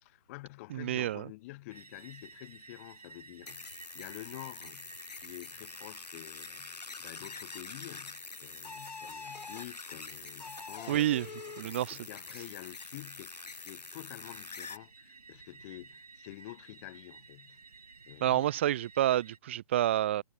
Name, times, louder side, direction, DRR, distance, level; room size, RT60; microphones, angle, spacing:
voice 1, 0.0-13.3 13.6-17.6 18.1-18.5, left 21 dB, 20° left, 0.8 m, -49 dB
voice 2, 0.7-1.3 10.9-11.3 11.6-12.0 18.2-20.2, right 12 dB, 20° right, 0.4 m, -28 dB
sound 1, 1.7-19.4, right 4 dB, 70° right, 4.6 m, -55 dB
sound 2, 3.5-14.8, left 4 dB, 85° left, 0.6 m, -45 dB
figure-of-eight pair, 140°, 21 cm